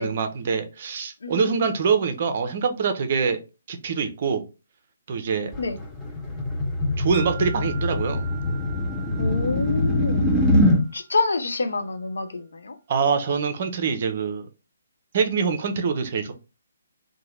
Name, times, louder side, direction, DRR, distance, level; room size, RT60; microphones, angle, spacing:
voice 1, 0.0-3.4 3.7-4.4 5.1-5.5 7.0-8.3 12.9-14.5 15.1-16.3, right 5 dB, 40° right, 0.5 m, -24 dB
voice 2, 1.2-1.7 5.6-5.8 9.2-10.2 10.9-12.8, left 3 dB, 60° left, 0.4 m, -27 dB
sound 1, 5.5-10.8, left 1 dB, 5° left, 0.6 m, -23 dB
Wind chime, 7.1-11.4, right 9 dB, 20° right, 1.1 m, -43 dB
2.8 x 2.1 x 3.1 m
figure-of-eight pair, 135°, 0 cm